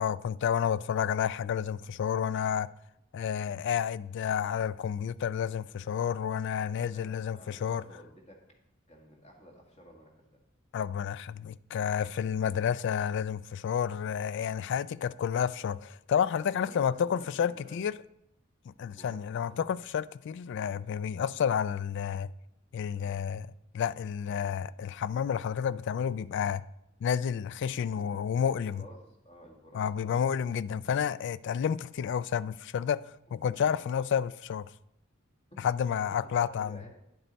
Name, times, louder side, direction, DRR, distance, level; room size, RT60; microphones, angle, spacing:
voice 1, 0.0-2.7 3.1-7.8 10.7-17.9 18.7-22.3 22.7-23.4 23.7-26.6 27.0-28.8 29.7-33.1 33.3-34.7 35.6-36.8, left 8 dB, 55° left, 0.3 m, -30 dB
voice 2, 6.6-8.4 8.9-10.4 14.5-14.7 16.4-17.8 18.9-19.7 22.8-23.2 27.7-30.3 35.5-35.6 36.0-36.9, equal, 35° left, 1.8 m, -53 dB
10.5 x 7.6 x 4.0 m
head